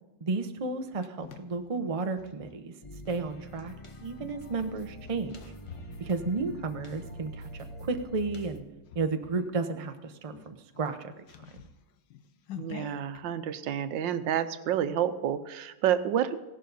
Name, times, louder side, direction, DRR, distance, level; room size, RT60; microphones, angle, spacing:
voice 1, 0.2-2.7 3.1-3.7 4.0-5.5 6.0-8.6 8.9-11.1, right 3 dB, 30° right, 7 dB, 0.6 m, -32 dB
sound 1, 0.6-2.5 3.5-7.7 8.2-8.5 8.8-9.5 9.8-9.9 10.3-13.2, left 8 dB, 90° left, 1.6 m, -48 dB
sound 2, 2.8-8.6, equal, 25° left, 0.7 m, -45 dB
voice 2, 12.6-16.4, right 10 dB, 85° right, 11 dB, 1.5 m, -29 dB
16.5 x 11.5 x 4.0 m, 1.1 s
omnidirectional pair, 2.0 m